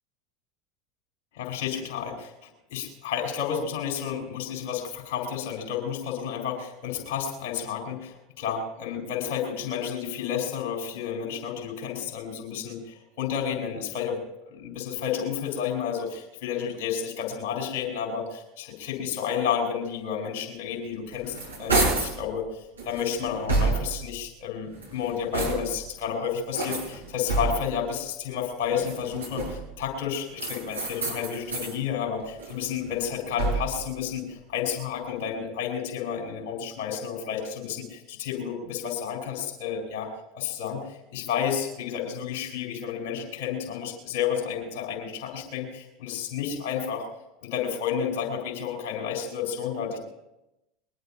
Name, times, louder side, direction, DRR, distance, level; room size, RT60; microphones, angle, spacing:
voice 1, 1.3-14.2 14.5-47.0 47.4-50.0, left 8 dB, 55° left, 1 dB, 4.3 m, -31 dB
sound 1, 20.9-22.2 22.8-24.1 24.6-25.9 26.5-27.8 28.7-29.7 30.4-31.8 32.2-33.8, right 3 dB, 80° right, 5.2 m, -29 dB
21.5 x 20.5 x 2.8 m, 0.94 s
figure-of-eight pair, 75°, 0 cm